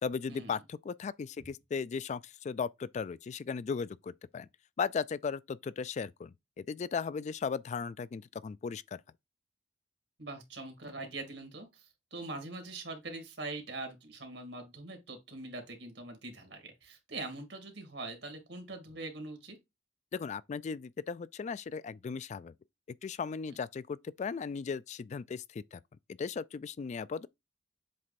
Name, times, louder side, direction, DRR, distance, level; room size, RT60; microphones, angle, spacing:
voice 1, 0.0-4.5 4.8-9.0 20.1-22.5 23.0-25.8 26.1-27.3, left 5 dB, 40° left, 0.3 m, -37 dB
voice 2, 10.2-19.6, right 2 dB, 80° right, 2.2 m, -43 dB
7.6 x 3.2 x 4.1 m
head